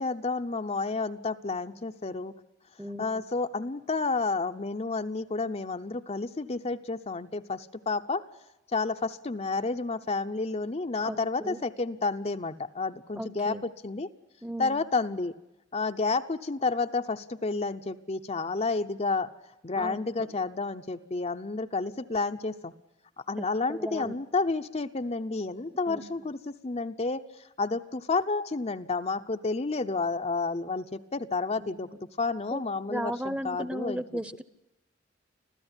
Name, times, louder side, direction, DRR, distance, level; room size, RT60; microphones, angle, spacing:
voice 1, 0.0-2.3 3.0-8.3 8.7-14.1 14.6-15.3 15.7-19.3 19.6-22.7 23.3-27.2 27.6-31.9 32.2-34.0, left 3 dB, 35° left, 7 dB, 0.8 m, -30 dB
voice 2, 2.8-3.2 11.0-11.6 13.1-13.6 14.4-14.8 19.8-20.4 23.4-24.1 25.9-26.1 31.6-31.9 32.5-32.6 32.9-34.4, equal, 5° right, 15 dB, 0.9 m, -36 dB
26.0 x 15.5 x 9.9 m, 0.93 s
head